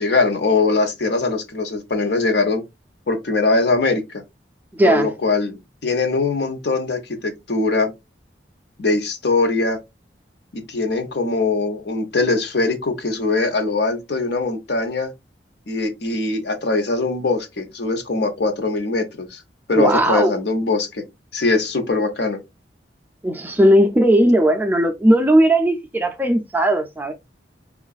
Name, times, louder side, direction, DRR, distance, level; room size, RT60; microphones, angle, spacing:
voice 1, 0.0-2.6 3.1-4.2 4.8-7.9 8.8-9.8 10.5-15.1 15.7-19.4 19.7-21.0 21.3-22.4, left 3 dB, 65° left, 0.8 m, -21 dB
voice 2, 4.7-5.1 19.7-20.3 23.2-27.1, right 1 dB, 10° right, 0.4 m, -17 dB
4.6 x 2.4 x 2.3 m
head